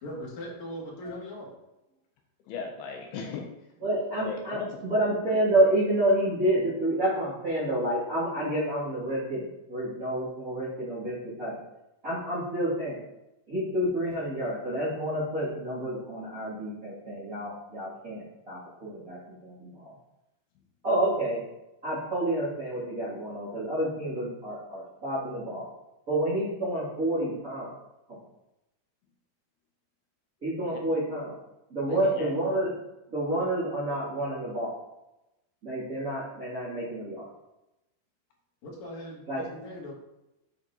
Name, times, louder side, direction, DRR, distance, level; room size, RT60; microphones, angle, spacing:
voice 1, 0.0-1.5 38.6-39.9, equal, 45° left, -6 dB, 3.3 m, -40 dB
voice 2, 2.5-3.5 4.2-4.8 30.7-30.8 31.9-32.3, left 5 dB, 75° left, 1 dB, 2.5 m, -37 dB
voice 3, 3.8-11.6 12.0-13.0 13.5-19.9 20.8-21.4 21.8-25.6 26.1-27.7 28.1-28.2 30.4-31.4 31.7-32.7 33.1-34.8 35.6-37.3 39.3-39.4, right 1 dB, 25° right, -11 dB, 2.2 m, -29 dB
9.3 x 5.8 x 2.9 m, 0.91 s
omnidirectional pair, 5.1 m